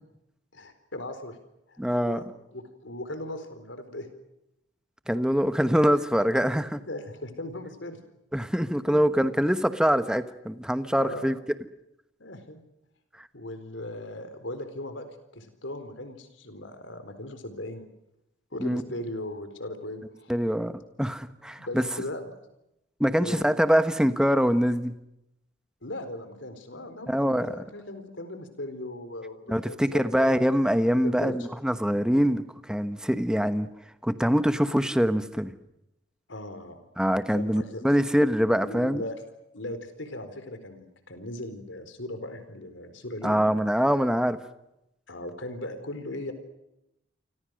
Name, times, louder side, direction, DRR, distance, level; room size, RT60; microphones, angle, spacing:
voice 1, 0.5-1.4 1.7-2.3 2.5-4.1 5.4-5.5 6.8-8.0 8.9-9.0 11.0-11.4 12.2-12.6 13.3-15.1 15.3-17.8 18.5-20.3 21.6-22.4 23.2-23.4 25.8-30.4 31.0-31.5 36.3-36.8 37.3-37.8 38.6-39.2 39.5-43.4 45.1-46.3, left 1 dB, 75° left, 10 dB, 4.2 m, -38 dB
voice 2, 1.8-2.2 5.1-6.8 8.3-11.4 18.6-18.8 20.3-21.9 23.0-24.9 27.1-27.6 29.5-33.7 34.0-35.5 37.0-39.0 43.2-44.4, equal, 5° right, 11 dB, 1.1 m, -24 dB
29.0 x 25.0 x 6.5 m, 0.86 s
head